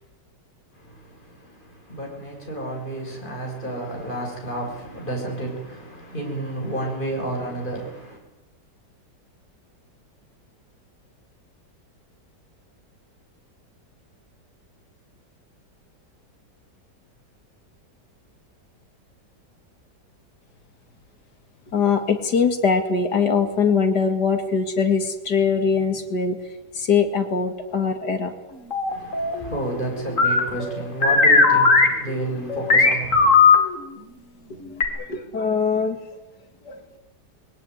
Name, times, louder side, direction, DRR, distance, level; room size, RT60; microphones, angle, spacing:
voice 1, 0.7-8.2 28.9-33.4, right 1 dB, 25° left, 7.1 m, -31 dB
voice 2, 21.7-26.4 26.8-28.3 34.9-36.0 36.6-36.8, left 5 dB, 70° left, 2.8 m, -22 dB
sound 1, 28.7-29.3 30.2-33.6 34.8-34.9, left 4 dB, 45° left, 3.2 m, -16 dB
21.0 x 18.0 x 9.6 m
omnidirectional pair, 1.9 m